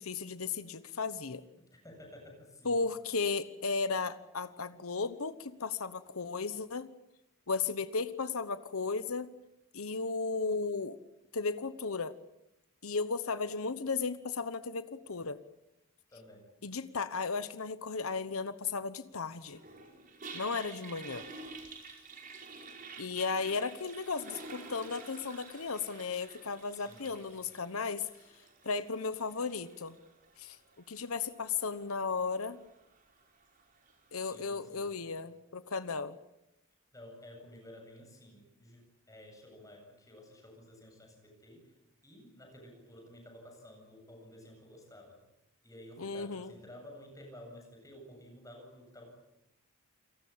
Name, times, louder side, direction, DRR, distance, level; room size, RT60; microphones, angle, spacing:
voice 1, 0.0-1.4 2.6-6.9 7.5-9.3 9.7-11.0 11.3-12.1 12.8-15.4 16.6-19.6 20.3-21.3 23.0-28.1 28.6-29.9 30.4-30.6 30.9-32.6 34.1-36.2 46.0-46.5, left 4 dB, 80° left, 12 dB, 1.1 m, -35 dB
voice 2, 1.6-2.8 16.1-16.5 26.7-27.2 34.2-35.1 36.9-41.7 42.0-45.2 45.6-49.1, left 1 dB, 15° left, 3 dB, 7.9 m, -53 dB
Toilet flush, 19.4-34.6, right 3 dB, 40° right, 5.2 m, -51 dB
29.0 x 19.0 x 8.8 m, 0.88 s
head